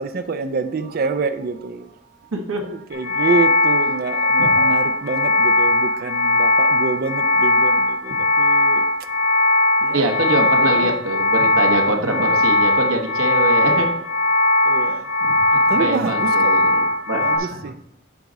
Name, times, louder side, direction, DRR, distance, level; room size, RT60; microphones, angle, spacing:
voice 1, 0.0-1.9 2.6-8.9 9.6-10.9 12.0-12.3 13.6-13.9 14.6-15.1 15.7-16.5 16.8-18.0, right 4 dB, 45° right, 0.4 m, -27 dB
voice 2, 2.3-2.6 4.4-4.6 9.9-13.9 15.2-17.6, right 1 dB, 75° right, 1.4 m, -24 dB
sound 1, 2.9-17.4, left 2 dB, 85° left, 1.7 m, -18 dB
9.3 x 5.0 x 4.0 m
head